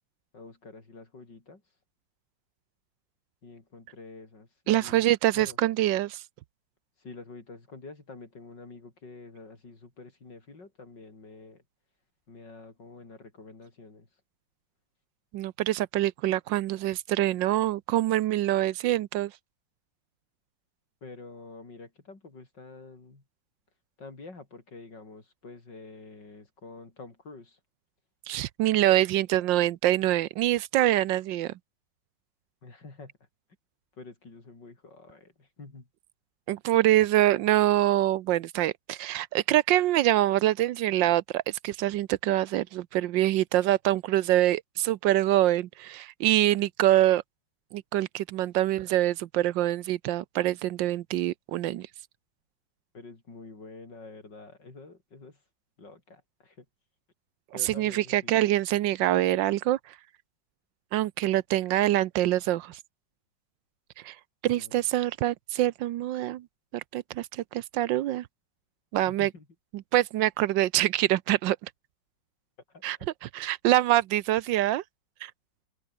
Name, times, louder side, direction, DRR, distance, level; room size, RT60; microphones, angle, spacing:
voice 1, 0.3-1.6 3.4-5.6 7.0-11.6 12.3-14.1 21.0-23.2 24.0-27.6 32.6-33.1 33.9-35.9 52.9-55.4 55.8-56.7 57.5-58.4 64.4-64.8 69.1-69.5 72.7-73.1, left 3 dB, 70° left, 5.5 m, -47 dB
voice 2, 4.7-6.2 15.3-19.3 28.3-31.5 36.5-47.2 47.7-51.9 57.6-59.9 60.9-62.8 64.0-64.2 64.4-66.5 66.7-68.3 68.9-69.3 69.7-71.7 72.8-73.0 73.3-74.8 75.2-75.3, right 14 dB, 80° right, 1.4 m, -25 dB
open air
omnidirectional pair, 2.0 m